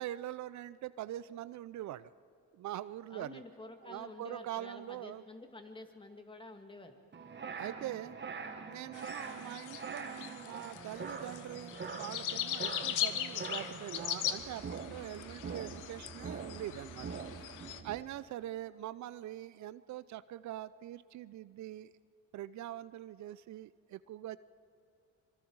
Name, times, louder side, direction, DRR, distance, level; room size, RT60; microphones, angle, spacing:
voice 1, 0.0-2.1 2.5-3.4 3.8-5.2 7.6-8.2 8.7-17.6 17.8-21.9 22.3-24.4, right 13 dB, 70° right, 16 dB, 0.5 m, -43 dB
voice 2, 3.1-7.0, left 2 dB, 15° left, 5 dB, 2.0 m, -50 dB
sound 1, 7.1-18.0, right 5 dB, 35° right, 1.6 m, -44 dB
sound 2, 8.9-17.8, left 11 dB, 85° left, 1.0 m, -40 dB
25.0 x 22.5 x 4.7 m, 2.3 s
cardioid pair, 90°, 30 cm